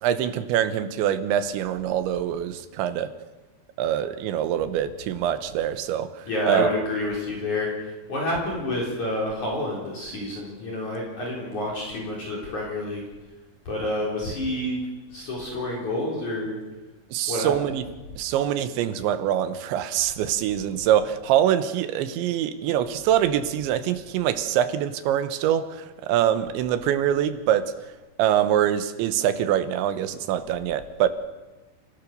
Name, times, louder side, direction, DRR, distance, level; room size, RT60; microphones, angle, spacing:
voice 1, 0.0-3.1 3.8-6.7 17.1-17.8 18.2-27.7 28.2-31.1, right 10 dB, 80° right, 11 dB, 3.3 m, -24 dB
voice 2, 6.3-13.0 13.7-14.8 15.1-16.6 17.3-17.5, left 1 dB, 40° left, -3 dB, 5.3 m, -28 dB
30.0 x 16.0 x 6.7 m, 1.1 s
omnidirectional pair, 5.4 m